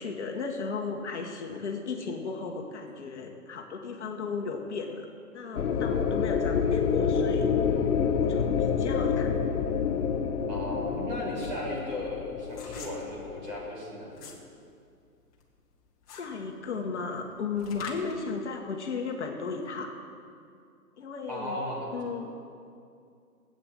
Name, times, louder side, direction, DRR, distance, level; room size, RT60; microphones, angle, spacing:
voice 1, 0.0-5.1 5.3-7.5 8.1-9.3 16.1-20.0 21.0-21.6 21.9-22.3, left 4 dB, 50° left, 2 dB, 1.3 m, -35 dB
sound 1, 5.5-13.7, left 6 dB, 70° left, 1.1 m, -28 dB
voice 2, 10.5-14.3 21.3-21.9, equal, 30° right, -4 dB, 3.3 m, -36 dB
sound 2, 10.8-14.5 14.9-18.2, left 5 dB, 25° left, 1.3 m, -47 dB
14.0 x 8.7 x 7.7 m, 2.4 s
hypercardioid pair, 165°, 46 cm